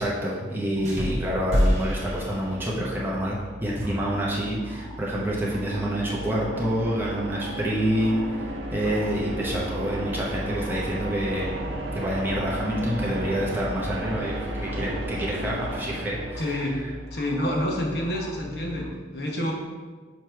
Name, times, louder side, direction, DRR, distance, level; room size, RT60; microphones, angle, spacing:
voice 1, 0.0-11.5 11.9-16.6, equal, 10° right, -5 dB, 0.8 m, -27 dB
sound 1, 0.8-18.9, left 1 dB, 10° left, 1.3 m, -42 dB
sound 2, 0.8-3.0, equal, 35° right, 1.0 m, -26 dB
sound 3, 4.3-17.1, right 1 dB, 75° right, 0.7 m, -34 dB
voice 2, 16.4-16.8 17.1-19.5, left 1 dB, 60° left, -1 dB, 1.0 m, -28 dB
6.7 x 3.0 x 4.6 m, 1.4 s
head